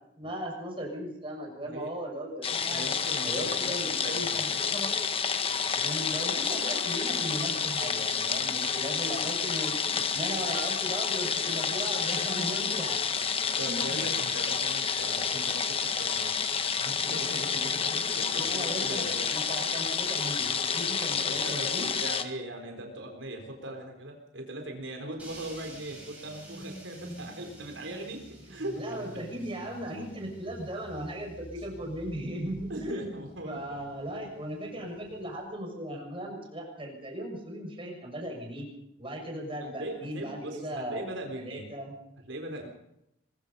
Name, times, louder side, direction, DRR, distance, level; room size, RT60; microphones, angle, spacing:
voice 1, 0.2-2.9 3.2-4.5 5.7-13.0 13.7-14.1 18.3-21.9 28.7-33.0 33.4-38.7 39.0-41.9, right 1 dB, 25° right, 1 dB, 6.8 m, -37 dB
sound 1, 2.4-22.2, left 6 dB, 30° left, 1.5 m, -29 dB
voice 2, 2.7-4.4 13.6-16.4 16.7-19.4 20.7-20.8 21.1-28.9 32.7-33.9 39.6-41.7 42.3-42.7, right 1 dB, 75° right, 3 dB, 4.1 m, -40 dB
sound 2, 25.2-35.4, right 1 dB, 5° right, 6.7 m, -49 dB
24.0 x 21.5 x 5.5 m, 0.82 s
head